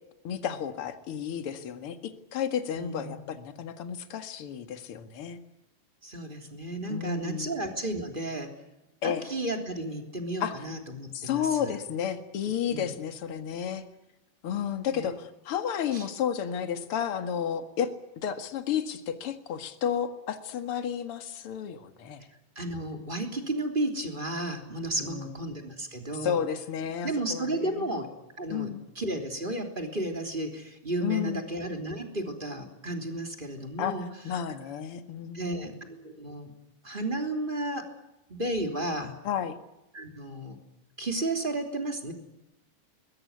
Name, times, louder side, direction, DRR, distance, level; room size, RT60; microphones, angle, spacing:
voice 1, 0.2-5.4 6.9-7.5 9.0-9.2 10.4-10.6 11.1-13.9 14.4-17.9 18.2-22.3 25.0-25.3 26.2-27.8 28.5-28.9 31.0-31.4 33.8-34.0 34.2-35.8 39.2-39.6, left 8 dB, 45° left, 9 dB, 2.4 m, -32 dB
voice 2, 2.8-3.2 6.0-8.5 9.0-11.7 12.7-12.9 14.9-15.1 15.9-16.1 22.5-26.4 27.0-28.1 28.4-34.1 35.3-36.5 36.8-37.9 38.3-39.1 39.9-40.6 41.0-42.1, right 1 dB, 15° right, 5 dB, 3.2 m, -33 dB
22.0 x 21.0 x 9.5 m, 0.93 s
omnidirectional pair, 3.9 m